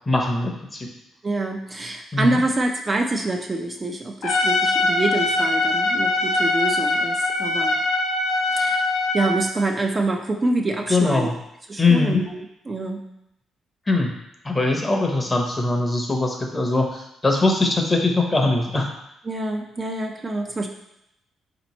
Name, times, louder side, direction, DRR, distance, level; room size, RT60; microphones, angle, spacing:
voice 1, 0.1-0.9 2.1-2.4 10.9-11.3 11.8-12.2 13.9-14.1 14.4-18.9, left 3 dB, 20° left, 2 dB, 0.8 m, -21 dB
voice 2, 1.2-7.8 8.5-8.8 9.1-11.3 11.7-12.4 12.7-13.1 19.3-20.7, right 2 dB, 25° right, 2 dB, 0.4 m, -26 dB
Trumpet, 4.2-9.5, left 2 dB, 80° left, 0.7 m, -22 dB
4.1 x 2.9 x 4.1 m, 0.83 s
cardioid pair, 90°, 0 cm